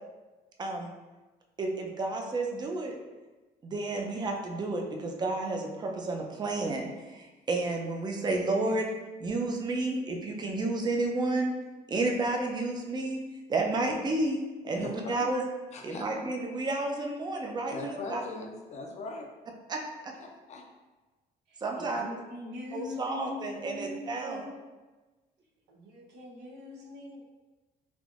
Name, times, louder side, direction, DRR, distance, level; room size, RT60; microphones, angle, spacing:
voice 1, 0.6-0.9 1.6-3.0 3.6-8.9 9.2-11.6 11.9-13.2 13.5-15.4 15.8-18.2 19.7-20.1 21.6-22.0 22.7-24.4, right 2 dB, 25° right, 1 dB, 0.5 m, -31 dB
voice 2, 14.8-15.3 15.7-16.0 17.7-19.3 20.2-20.6, left 3 dB, 45° left, 1 dB, 0.5 m, -40 dB
voice 3, 21.5-24.7 25.7-27.2, left 1 dB, 80° right, -2 dB, 0.8 m, -42 dB
3.4 x 2.5 x 2.4 m, 1.2 s
cardioid pair, 110°, 17 cm